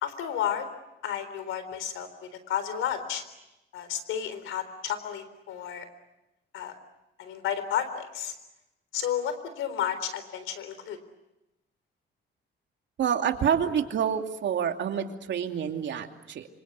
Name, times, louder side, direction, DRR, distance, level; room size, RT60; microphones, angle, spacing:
voice 1, 0.0-0.7 1.0-2.1 2.5-3.2 3.7-5.9 6.5-6.7 7.2-8.3 8.9-11.0, left 9 dB, 85° left, 11 dB, 3.8 m, -32 dB
voice 2, 13.0-16.5, right 8 dB, 70° right, 5 dB, 2.6 m, -28 dB
26.5 x 26.0 x 8.2 m, 0.94 s
cardioid pair, 90°, 20 cm